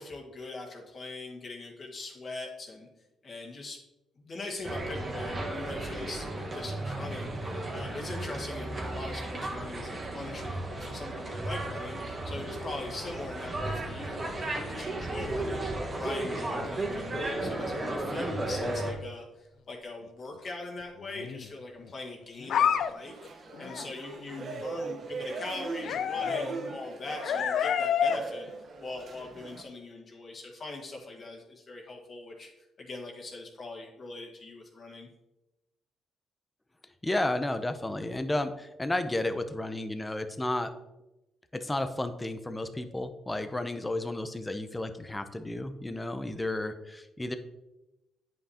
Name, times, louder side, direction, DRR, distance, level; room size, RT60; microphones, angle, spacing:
voice 1, 0.0-2.9 3.2-3.8 4.1-15.6 16.0-23.1 23.6-28.5 28.8-32.5 32.8-35.1, left 2 dB, 45° left, 0 dB, 1.7 m, -41 dB
sound 1, 4.6-18.9, right 2 dB, 35° right, 1.4 m, -34 dB
sound 2, 13.1-13.2 13.4-13.6 16.3-17.6 18.1-18.2 18.7-18.8 21.0-21.5 21.9-22.0 22.4-22.9 23.2-23.3 23.5-23.9 24.2-24.6 25.8-28.2 28.5-28.6, left 8 dB, 70° left, 0.4 m, -30 dB
sound 3, 22.7-29.6, right 3 dB, 55° right, 1.0 m, -40 dB
voice 2, 37.0-40.7 41.5-47.4, left 1 dB, 15° left, 9 dB, 0.6 m, -32 dB
9.1 x 5.5 x 2.9 m, 0.97 s
cardioid pair, 90°, 0 cm